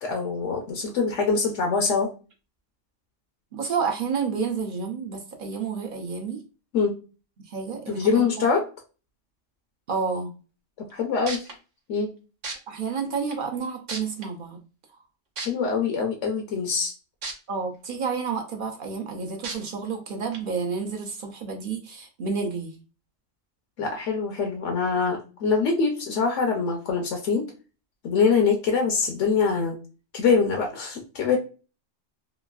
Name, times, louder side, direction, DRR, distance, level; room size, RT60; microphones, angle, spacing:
voice 1, 0.0-2.1 6.7-6.9 7.9-8.6 10.8-11.5 11.9-12.1 15.4-16.9 23.8-27.5 28.0-29.8 30.1-31.4, left 5 dB, 75° left, 3 dB, 0.9 m, -24 dB
voice 2, 3.5-6.4 7.5-8.4 9.9-10.3 12.7-14.6 17.5-22.8, right 5 dB, 55° right, 3 dB, 0.6 m, -30 dB
sound 1, 10.9-11.0 11.3-11.5 12.4-12.5 13.3-13.4 13.9-14.2 15.4-15.5 17.2-17.3 17.8-17.9 19.4-19.5 20.3-20.4, right 3 dB, 80° right, 1.1 m, -32 dB
3.0 x 2.4 x 2.3 m, 0.33 s
omnidirectional pair, 1.3 m